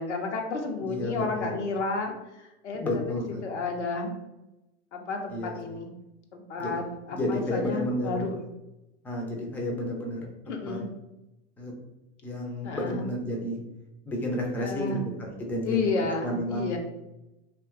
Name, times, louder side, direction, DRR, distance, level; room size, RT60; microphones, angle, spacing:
voice 1, 0.0-4.1 4.9-5.9 6.3-8.5 10.5-10.9 12.6-13.1 14.6-15.0 15.6-16.8, left 3 dB, 85° left, 2 dB, 0.6 m, -31 dB
voice 2, 0.8-1.6 2.8-3.4 5.3-5.8 6.6-6.7 7.1-8.3 9.0-10.8 11.6-11.7 12.2-13.6 14.0-15.9 16.2-16.7, left 1 dB, 5° left, 0 dB, 0.3 m, -31 dB
2.7 x 2.2 x 2.4 m, 0.95 s
hypercardioid pair, 95°, 35 cm